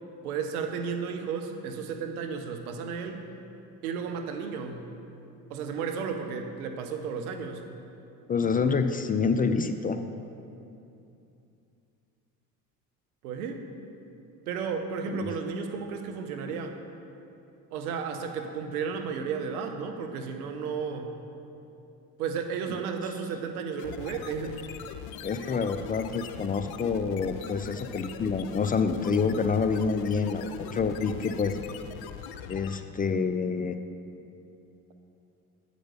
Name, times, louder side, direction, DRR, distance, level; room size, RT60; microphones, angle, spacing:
voice 1, 0.2-3.2 3.8-4.9 5.5-7.7 13.2-13.6 14.5-16.8 17.7-21.1 22.2-24.6, right 6 dB, 90° right, 6 dB, 0.8 m, -33 dB
voice 2, 8.3-10.0 15.1-15.3 25.2-31.6 32.5-33.8, left 5 dB, 20° left, 8 dB, 0.3 m, -27 dB
sound 1, 23.8-33.0, left 8 dB, 60° left, 0.7 m, -42 dB
8.9 x 5.2 x 6.7 m, 2.7 s
hypercardioid pair, 70°, 43 cm